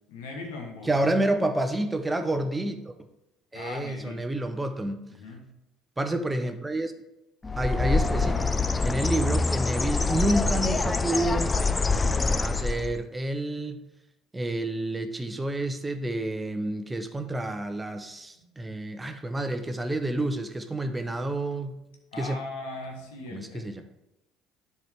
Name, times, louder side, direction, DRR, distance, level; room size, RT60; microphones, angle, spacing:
voice 1, 0.1-0.9 3.5-4.2 5.1-5.5 22.1-23.8, left 2 dB, 75° left, 1 dB, 1.4 m, -39 dB
voice 2, 0.8-3.1 3.5-5.0 6.0-6.9 7.6-8.5 8.8-11.6 12.4-13.8 14.3-21.8 22.2-22.4 23.3-23.8, right 1 dB, 15° right, 7 dB, 0.8 m, -29 dB
Bird, 7.4-13.0, left 3 dB, 20° left, 0.4 m, -25 dB
10.5 x 4.6 x 3.5 m, 0.93 s
hypercardioid pair, 60°, 0 cm